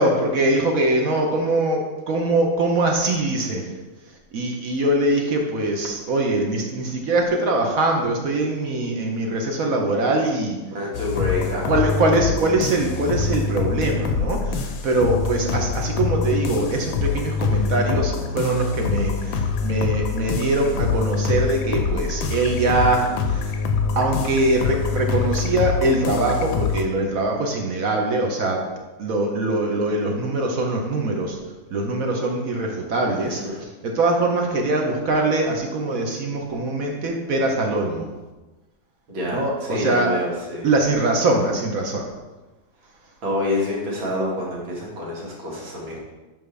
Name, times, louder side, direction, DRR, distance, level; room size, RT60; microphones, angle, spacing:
voice 1, 0.0-3.7 4.3-10.6 11.7-23.6 24.0-28.6 29.0-31.4 31.7-38.1 39.3-40.1 40.6-42.1, right 2 dB, 55° right, 1 dB, 1.1 m, -22 dB
voice 2, 10.7-11.9 33.2-33.6 39.1-40.7 43.2-46.0, left 1 dB, 85° right, -4 dB, 2.5 m, -27 dB
sound 1, 10.9-26.8, left 5 dB, 90° left, 1.4 m, -25 dB
7.7 x 5.3 x 3.3 m, 1.1 s
omnidirectional pair, 2.1 m